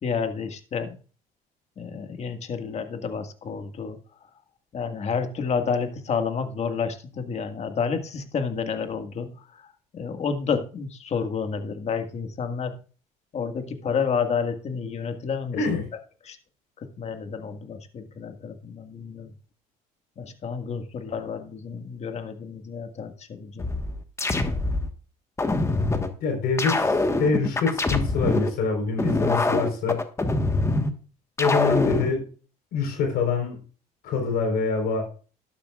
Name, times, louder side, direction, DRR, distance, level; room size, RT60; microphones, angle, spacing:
voice 1, 0.0-1.0 1.8-4.0 4.7-9.6 9.9-12.8 13.3-15.6 16.2-16.4 16.8-19.3 20.2-23.7, left 6 dB, 40° left, 7 dB, 1.8 m, -30 dB
voice 2, 15.5-15.8 26.2-30.0 31.4-32.2 32.7-33.6 34.0-35.0, left 4 dB, 70° left, 3 dB, 4.2 m, -25 dB
sound 1, 23.6-24.9 25.4-26.1 26.6-28.5 29.0-30.9 31.4-32.1, left 2 dB, 15° left, 1.4 m, -24 dB
12.0 x 12.0 x 2.4 m, 0.37 s
cardioid pair, 105°, 16 cm